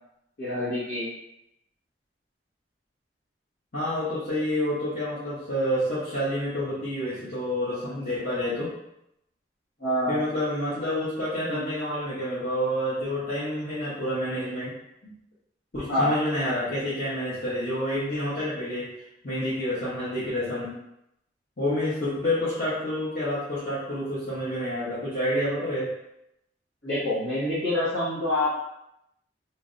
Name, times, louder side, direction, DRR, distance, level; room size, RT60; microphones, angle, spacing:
voice 1, 0.4-1.1 9.8-10.2 11.4-11.6 15.9-16.1 26.8-28.6, left 1 dB, 75° left, -13 dB, 1.2 m, -26 dB
voice 2, 3.7-8.7 10.1-14.7 15.0-15.1 15.7-20.7 21.6-25.9, left 1 dB, 55° left, -12 dB, 1.0 m, -28 dB
3.1 x 2.5 x 2.6 m, 0.81 s
head